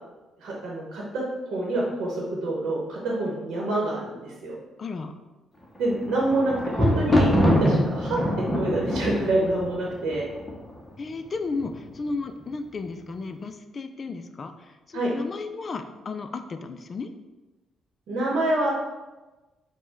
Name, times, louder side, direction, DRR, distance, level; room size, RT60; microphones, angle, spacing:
voice 1, 0.4-1.2 1.5-4.5 5.8-8.2 8.5-10.2 14.9-15.1 18.1-18.7, right 2 dB, 75° right, -3 dB, 0.9 m, -26 dB
voice 2, 4.8-5.1 11.0-17.1, left 4 dB, 40° left, 7 dB, 0.3 m, -34 dB
Thunder, 5.7-10.9 11.6-12.1 12.4-12.5, left 1 dB, 10° left, 0.7 m, -24 dB
4.3 x 2.2 x 4.5 m, 1.1 s
cardioid pair, 90°, 0 cm